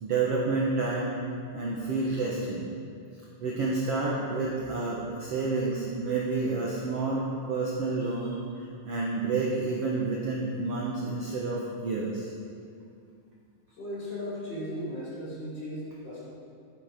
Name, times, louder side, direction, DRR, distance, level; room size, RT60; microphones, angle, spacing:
voice 1, 0.0-1.2 1.5-2.7 3.4-12.3, right 3 dB, 60° right, -3 dB, 1.7 m, -29 dB
voice 2, 13.7-16.3, equal, 30° left, -7 dB, 3.8 m, -36 dB
14.0 x 9.3 x 5.1 m, 2.4 s
omnidirectional pair, 4.1 m